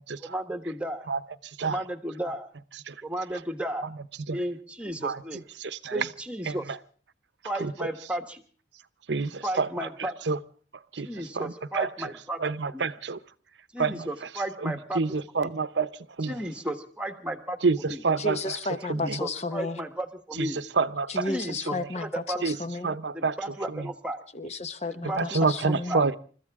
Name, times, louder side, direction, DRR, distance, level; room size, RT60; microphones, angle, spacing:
voice 1, 0.2-1.1 1.6-2.5 3.0-3.9 4.3-5.4 5.9-6.7 7.4-8.4 9.4-10.2 11.0-12.4 12.7-12.9 13.7-15.0 15.4-15.5 16.3-17.6 17.8-18.0 18.9-20.6 21.3-22.4 23.1-24.2 25.1-25.4 25.6-26.0, right 1 dB, 5° right, 6 dB, 1.4 m, -34 dB
voice 2, 5.6-6.1 6.5-6.8 7.6-7.9 9.1-10.4 10.9-11.1 11.3-11.9 12.4-13.2 13.8-14.1 14.6-15.9 16.2-16.4 17.6-18.6 18.9-19.2 20.3-21.3 21.7-21.9 22.4-22.6 22.8-23.4 23.7-23.9 25.1-26.2, right 4 dB, 75° right, 15 dB, 0.8 m, -28 dB
voice 3, 18.2-19.8 21.1-23.0 24.3-26.0, left 2 dB, 35° left, 11 dB, 1.0 m, -33 dB
28.5 x 14.0 x 3.6 m, 0.42 s
head